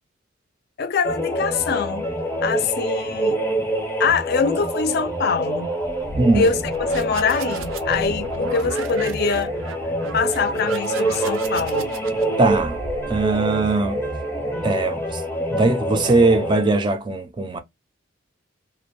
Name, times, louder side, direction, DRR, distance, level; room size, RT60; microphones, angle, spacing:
voice 1, 0.8-2.1 2.4-3.4 4.0-5.7 6.3-6.6 6.9-9.5 10.1-11.9, left 5 dB, 50° left, 0.4 m, -23 dB
sound 1, 1.0-16.7, right 1 dB, 15° left, 0.6 m, -26 dB
sound 2, 5.8-13.5, right 4 dB, 80° right, 0.5 m, -34 dB
voice 2, 12.4-12.8 13.1-14.0 14.6-15.2 15.5-17.6, right 3 dB, 25° right, 0.3 m, -20 dB
2.5 x 2.1 x 2.9 m
head